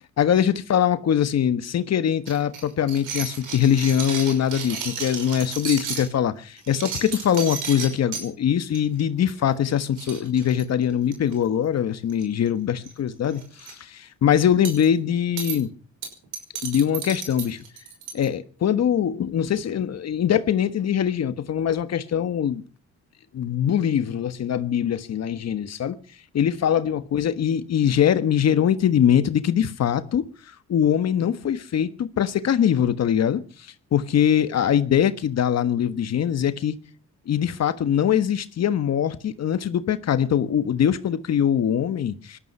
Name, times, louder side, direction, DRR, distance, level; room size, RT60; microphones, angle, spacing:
voice 1, 0.2-15.7 16.6-17.6 18.1-22.6 23.3-26.0 26.3-30.2 30.7-33.4 33.9-36.7 37.3-42.4, left 9 dB, 60° left, 1.4 m, -22 dB
sound 1, 2.3-6.1 6.6-8.2 8.7-9.0 9.3-9.4 9.7-9.8 10.0-11.3 12.1-12.5 12.8-12.9 13.3-13.7 14.6-14.9 15.4-15.6 16.0-18.2, right 6 dB, 90° right, 5.8 m, -33 dB
19.5 x 13.0 x 5.6 m
cardioid pair, 90°, 30 cm